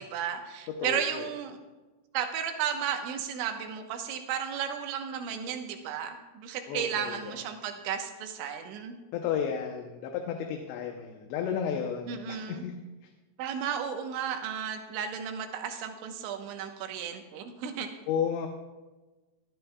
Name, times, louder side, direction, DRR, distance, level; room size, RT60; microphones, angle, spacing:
voice 1, 0.0-1.6 2.1-9.0 12.1-12.6 13.4-17.9, right 8 dB, 80° right, 5 dB, 3.4 m, -34 dB
voice 2, 0.8-1.3 6.7-7.3 9.1-12.7 18.1-18.5, left 7 dB, 75° left, 3 dB, 2.9 m, -32 dB
20.0 x 12.5 x 2.3 m, 1.2 s
omnidirectional pair, 5.4 m